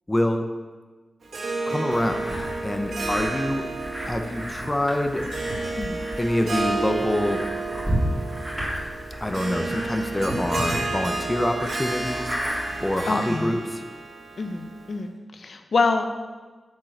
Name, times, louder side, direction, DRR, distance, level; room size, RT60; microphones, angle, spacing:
voice 1, 0.1-0.5 1.7-2.2 2.6-3.7 4.1-5.3 6.2-7.4 9.2-12.4 12.8-13.8, left 1 dB, 10° left, 5 dB, 0.7 m, -26 dB
Harp, 1.2-15.0, right 3 dB, 65° right, 1.6 m, -31 dB
sound 1, 1.9-13.1, equal, 15° right, 2.8 m, -33 dB
voice 2, 13.1-13.6 14.4-16.1, left 3 dB, 60° left, 6 dB, 0.7 m, -26 dB
7.5 x 7.3 x 6.5 m, 1.3 s
wide cardioid pair, 150°, 0 cm